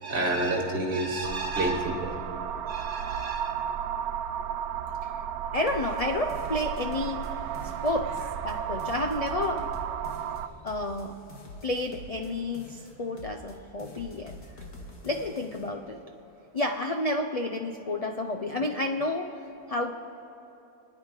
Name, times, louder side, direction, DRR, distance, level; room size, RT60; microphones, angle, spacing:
voice 1, 0.0-2.1 2.7-3.5, right 2 dB, 40° right, 1 dB, 1.7 m, -29 dB
sound 1, 1.2-10.5, right 9 dB, 80° right, 1.0 m, -33 dB
voice 2, 5.5-7.3 7.8-9.7 10.6-11.1 11.6-14.4 15.0-16.0 16.5-19.4 19.7-19.9, left 2 dB, 50° left, 4 dB, 0.4 m, -30 dB
sound 2, 5.7-7.3 7.5-8.5 8.8-12.3 12.5-13.5 13.8-15.7, left 2 dB, 75° left, 2.2 m, -46 dB
28.5 x 9.8 x 4.9 m, 2.8 s
omnidirectional pair, 1.6 m